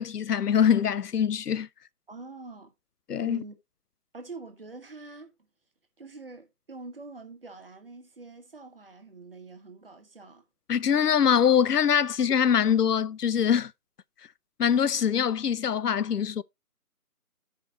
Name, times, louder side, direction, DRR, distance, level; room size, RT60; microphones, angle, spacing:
voice 1, 0.0-1.7 3.1-3.4 10.7-13.7 14.6-16.4, left 8 dB, 90° left, 0.6 m, -23 dB
voice 2, 2.1-2.7 3.2-3.5 4.1-5.3 6.0-10.4, right 3 dB, 40° right, 1.4 m, -45 dB
14.0 x 5.1 x 2.9 m
figure-of-eight pair, 165°, 46 cm